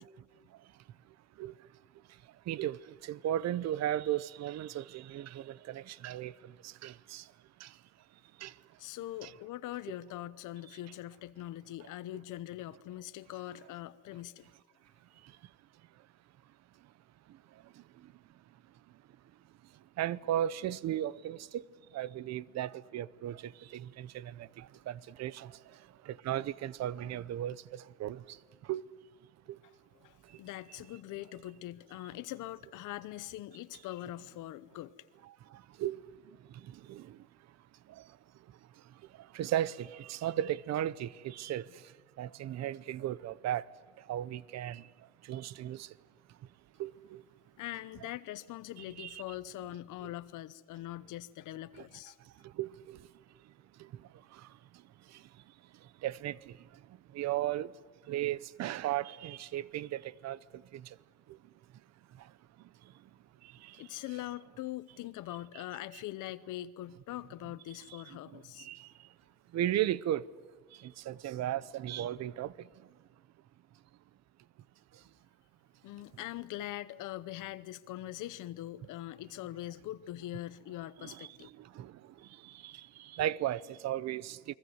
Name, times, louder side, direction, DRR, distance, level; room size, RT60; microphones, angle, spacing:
voice 1, 1.4-1.7 2.1-7.3 7.6-7.8 8.4-8.6 9.2-9.3 15.2-15.4 17.3-18.1 19.7-21.6 21.9-28.9 29.5-29.6 30.2-30.4 35.5-36.0 36.4-37.3 37.9-38.2 38.5-43.7 44.0-46.0 46.3-46.4 46.8-47.2 49.0-49.2 52.2-53.1 53.4-53.5 53.8-55.4 55.7-57.7 58.0-61.0 61.3-61.4 62.1-63.1 63.4-64.0 65.5-65.6 67.9-69.1 69.5-70.3 70.7-72.9 74.9-75.0 81.0-84.6, right 12 dB, 55° right, 0.8 m, -37 dB
voice 2, 8.8-14.5 29.9-34.9 47.6-52.2 63.8-68.7 75.8-81.5, left 14 dB, 75° left, 0.9 m, -42 dB
29.0 x 21.5 x 7.9 m
cardioid pair, 140°, 31 cm